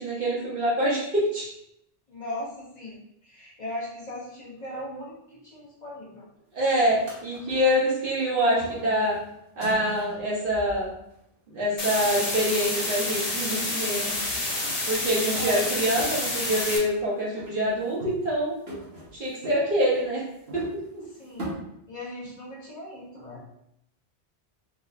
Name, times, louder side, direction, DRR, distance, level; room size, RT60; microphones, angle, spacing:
voice 1, 0.0-1.5 6.5-9.2 9.6-10.9 11.5-14.1 14.9-18.5 19.1-20.2 20.5-20.6, equal, 55° right, -6 dB, 1.2 m, -25 dB
voice 2, 2.1-6.3 15.3-15.7 21.1-21.5 21.9-23.4, left 1 dB, 40° left, -6 dB, 0.9 m, -38 dB
sound 1, 6.9-8.3 8.5-11.2 13.4-13.5 13.7-15.7 16.0-17.0 17.4-18.4 18.7-21.5, equal, 70° right, 1.3 m, -42 dB
sound 2, 11.8-16.8, left 2 dB, 70° left, 1.0 m, -29 dB
4.0 x 2.8 x 2.4 m, 0.78 s
omnidirectional pair, 1.1 m